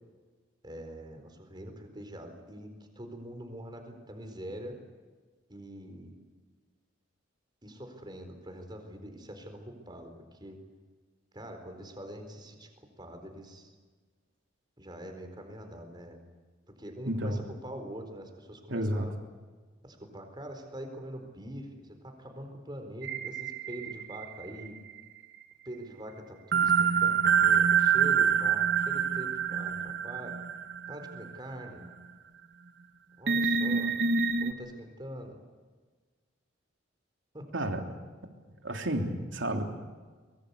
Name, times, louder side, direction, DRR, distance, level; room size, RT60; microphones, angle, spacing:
voice 1, 0.6-2.7 3.0-4.8 5.5-6.1 7.6-10.6 11.3-12.7 13.0-13.7 14.8-16.2 16.8-19.1 19.8-24.8 25.6-29.8 30.0-30.4 30.9-31.8 33.2-33.9 34.4-35.4 37.3-37.4, equal, 25° right, 5 dB, 4.2 m, -44 dB
voice 2, 17.1-17.4 18.7-19.1 37.5-37.8 38.6-39.6, right 1 dB, 75° right, 4 dB, 3.3 m, -31 dB
sound 1, 23.0-25.0 26.5-31.3 31.8-31.9 33.3-34.5, right 7 dB, 60° right, 1.4 m, -26 dB
24.0 x 22.0 x 8.4 m, 1.4 s
head